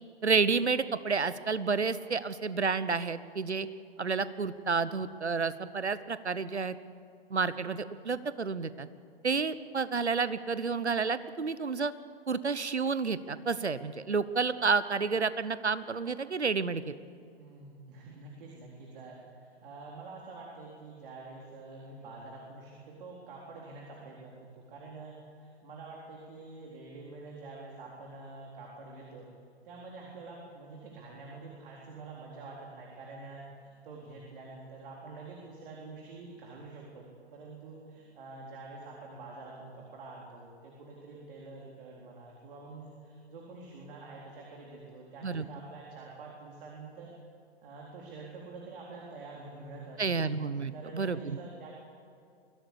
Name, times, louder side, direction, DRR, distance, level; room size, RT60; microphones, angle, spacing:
voice 1, 0.2-3.7 4.0-6.8 7.3-8.9 9.2-11.9 12.3-16.9 45.2-45.4 50.0-51.4, right 5 dB, 90° right, 15 dB, 1.1 m, -30 dB
voice 2, 17.3-29.3 29.6-37.0 37.3-47.1 47.6-50.3 50.7-51.8, right 3 dB, 55° right, -2 dB, 4.0 m, -47 dB
23.5 x 16.5 x 8.5 m, 2.5 s
figure-of-eight pair, 115°, 33 cm